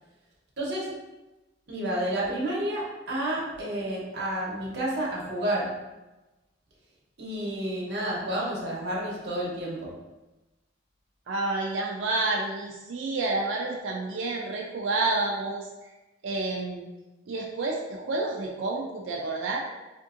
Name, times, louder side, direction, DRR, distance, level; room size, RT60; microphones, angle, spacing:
voice 1, 0.6-0.9 1.7-5.7 7.2-9.9, right 1 dB, 60° right, -5 dB, 0.9 m, -30 dB
voice 2, 11.3-15.9 16.2-16.9 17.3-19.6, right 2 dB, 80° right, 0 dB, 0.4 m, -29 dB
3.5 x 2.6 x 2.4 m, 1.1 s
head